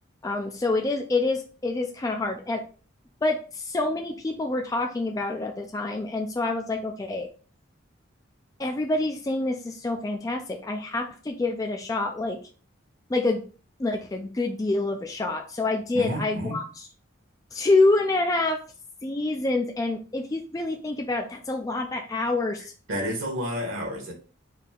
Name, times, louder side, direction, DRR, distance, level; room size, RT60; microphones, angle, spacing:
voice 1, 0.2-2.6 3.2-7.3 8.6-12.4 13.1-13.4 13.8-16.6 17.5-18.6 19.0-22.7, left 2 dB, 15° left, 0.3 m, -27 dB
voice 2, 15.9-16.6 22.9-24.1, equal, 85° right, 1.5 m, -30 dB
4.0 x 2.7 x 3.6 m
head